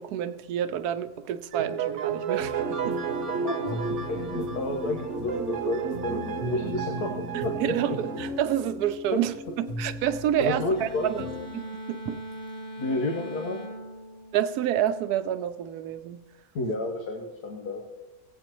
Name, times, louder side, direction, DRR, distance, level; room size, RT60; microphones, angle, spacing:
voice 1, 0.0-3.0 7.3-12.2 14.3-16.2, right 10 dB, 85° right, 1.1 m, -29 dB
sound 1, 1.5-8.3, right 6 dB, 55° right, 1.1 m, -31 dB
sound 2, 2.4-11.5, left 2 dB, 55° left, 1.3 m, -39 dB
voice 2, 3.4-3.8 4.1-7.1 7.4-7.7 9.1-9.2 10.4-11.1 12.8-13.6 16.5-17.8, left 2 dB, 90° left, 1.6 m, -30 dB
sound 3, 10.7-15.1, right 1 dB, 35° left, 1.6 m, -41 dB
17.0 x 8.3 x 3.0 m
omnidirectional pair, 1.6 m